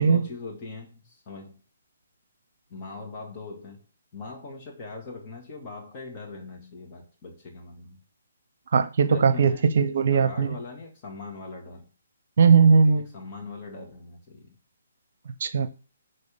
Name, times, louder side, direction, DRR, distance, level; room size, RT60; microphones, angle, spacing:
voice 1, 0.0-1.6 2.7-3.8 4.1-8.0 9.0-9.7 10.1-11.9 12.9-14.6, left 3 dB, 30° left, 2.2 m, -41 dB
voice 2, 8.7-10.5 12.4-13.1 15.4-15.7, right 5 dB, 55° right, 0.7 m, -19 dB
10.5 x 4.1 x 3.6 m
hypercardioid pair, 145°, 0 cm